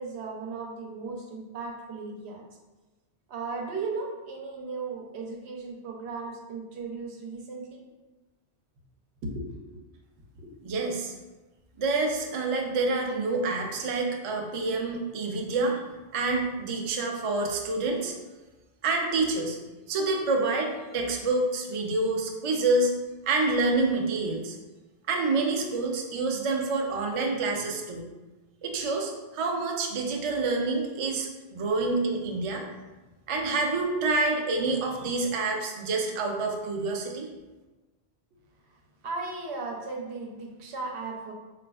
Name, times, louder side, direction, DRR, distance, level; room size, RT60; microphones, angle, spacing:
voice 1, 0.0-2.4 3.3-7.8 9.2-9.6 10.3-10.5 38.3-38.4 38.7-38.8 39.0-41.3, right 3 dB, 85° right, 0 dB, 0.9 m, -36 dB
voice 2, 10.6-11.1 11.8-15.8 16.1-18.1 18.8-19.6 19.9-22.9 23.3-24.6 25.1-28.1 28.6-32.7 33.3-37.3, right 3 dB, 55° right, 1 dB, 0.3 m, -27 dB
4.0 x 2.4 x 2.3 m, 1.2 s
omnidirectional pair, 1.1 m